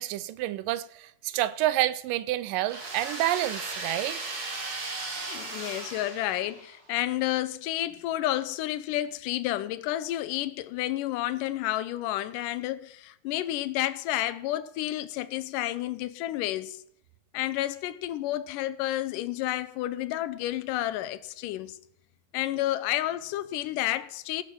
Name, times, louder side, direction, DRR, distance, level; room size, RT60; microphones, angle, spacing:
voice 1, 0.0-4.2, right 15 dB, 85° right, 2.3 m, -29 dB
sound 1, 2.7-6.8, right 3 dB, 35° right, 2.0 m, -36 dB
voice 2, 5.3-16.8 17.3-21.8 22.3-24.4, left 14 dB, 80° left, 2.2 m, -30 dB
17.0 x 6.5 x 6.1 m
omnidirectional pair, 3.9 m